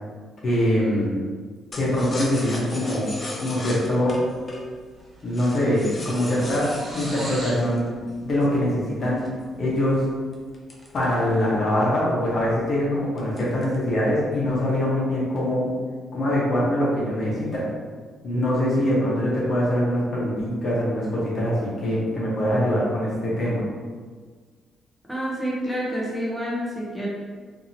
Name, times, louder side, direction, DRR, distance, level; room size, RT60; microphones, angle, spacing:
voice 1, 0.4-1.2 1.7-4.2 5.2-6.7 6.9-7.9 8.2-9.2 9.6-10.0 10.9-15.7 16.1-17.7 18.2-23.6, left 1 dB, 55° left, -6 dB, 1.0 m, -23 dB
sound 1, 1.7-8.6 9.2-11.6 12.0-12.1 12.4-12.7 13.2-13.9 14.2-14.8, left 2 dB, 35° left, 0.5 m, -38 dB
sound 2, 4.7-4.8 5.0-7.7, right 1 dB, 35° right, 0.9 m, -39 dB
voice 2, 25.1-27.1, equal, ahead, -6 dB, 0.8 m, -28 dB
2.8 x 2.7 x 2.7 m, 1.5 s
cardioid pair, 90°, 0 cm